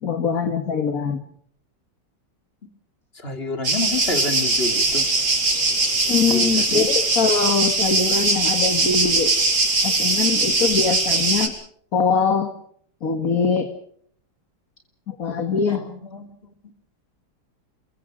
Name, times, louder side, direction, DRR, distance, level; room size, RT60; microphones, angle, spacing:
voice 1, 0.0-1.2 6.1-9.3 9.8-11.5 11.9-12.5 13.0-13.7 15.1-15.8, left 6 dB, 50° left, 7 dB, 2.2 m, -22 dB
voice 2, 3.1-5.0 6.2-6.7 15.7-16.5, left 3 dB, 30° left, 6 dB, 3.3 m, -29 dB
sound 1, 3.6-11.5, right 3 dB, 85° right, 5.5 m, -21 dB
29.0 x 22.5 x 5.1 m, 0.63 s
omnidirectional pair, 2.0 m